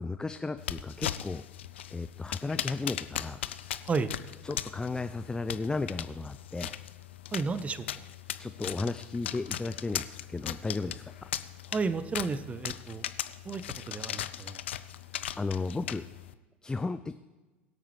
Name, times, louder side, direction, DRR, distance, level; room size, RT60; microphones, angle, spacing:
voice 1, 0.0-1.4 1.9-3.4 4.4-6.7 8.4-11.0 15.4-16.1 16.6-17.1, left 3 dB, 10° left, 10 dB, 0.5 m, -34 dB
sound 1, 0.6-16.3, left 11 dB, 70° left, 0.5 m, -39 dB
voice 2, 7.3-8.0 11.7-13.0 13.4-13.6 13.9-14.6, right 4 dB, 20° right, 14 dB, 0.8 m, -32 dB
22.0 x 8.6 x 3.3 m, 1.2 s
figure-of-eight pair, 75°, 6 cm